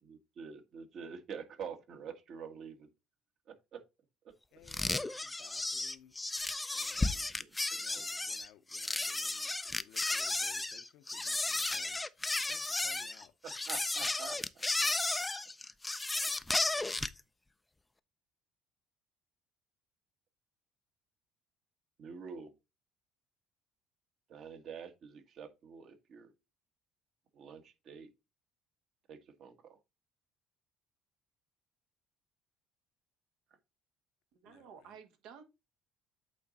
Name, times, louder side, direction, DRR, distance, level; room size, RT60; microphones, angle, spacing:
voice 1, 0.0-2.9 3.5-3.8 7.7-8.0 13.7-14.4 14.8-14.9 16.6-16.7 22.0-22.5 24.3-26.3 27.3-28.1 29.1-29.8, right 6 dB, 50° right, 1.4 m, -47 dB
voice 2, 4.5-6.1 6.7-7.3 7.7-12.0 12.5-13.3 34.5-34.9, left 11 dB, 75° left, 0.7 m, -59 dB
sound 1, 4.7-17.2, left 2 dB, 10° left, 0.4 m, -34 dB
voice 3, 34.3-35.4, right 7 dB, 75° right, 1.5 m, -53 dB
8.3 x 3.9 x 4.1 m
cardioid pair, 125°, 0 cm